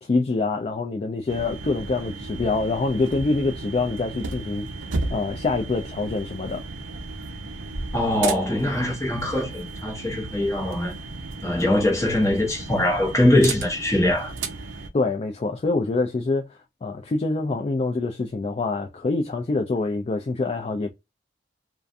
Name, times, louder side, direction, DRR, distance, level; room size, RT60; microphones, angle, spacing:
voice 1, 0.0-6.6 14.9-20.9, left 3 dB, 35° left, 0.3 m, -25 dB
sound 1, 1.3-14.9, right 3 dB, 90° right, 0.5 m, -34 dB
voice 2, 7.9-10.9 11.4-14.3, left 1 dB, 15° left, 1.0 m, -22 dB
2.5 x 2.2 x 2.5 m
head